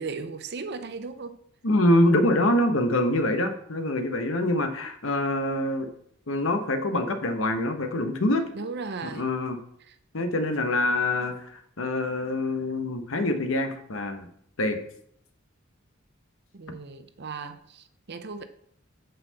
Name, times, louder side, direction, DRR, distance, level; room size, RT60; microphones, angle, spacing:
voice 1, 0.0-1.4 8.5-9.3 9.9-10.0 16.5-18.4, right 4 dB, 50° right, 0.7 m, -36 dB
voice 2, 1.6-5.9 6.3-8.4 9.0-9.6 10.1-14.3 14.6-14.8, left 1 dB, 65° left, 1.0 m, -25 dB
5.6 x 5.6 x 6.7 m
head